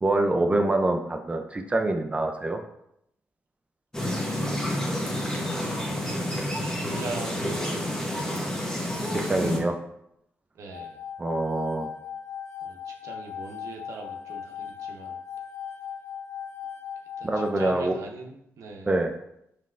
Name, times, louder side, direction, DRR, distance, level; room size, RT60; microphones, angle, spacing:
voice 1, 0.0-2.6 9.1-9.8 11.2-11.9 17.2-17.9 18.9-19.1, right 2 dB, 25° right, 4 dB, 0.4 m, -25 dB
sound 1, 3.9-9.6, left 1 dB, 10° left, 1.0 m, -29 dB
voice 2, 5.4-7.9 10.5-11.0 12.6-15.2 17.2-18.9, right 3 dB, 80° right, 2 dB, 0.8 m, -41 dB
sound 2, 10.7-17.7, left 8 dB, 85° left, 1.5 m, -38 dB
5.4 x 3.3 x 2.5 m, 0.78 s
cardioid pair, 75°, 5 cm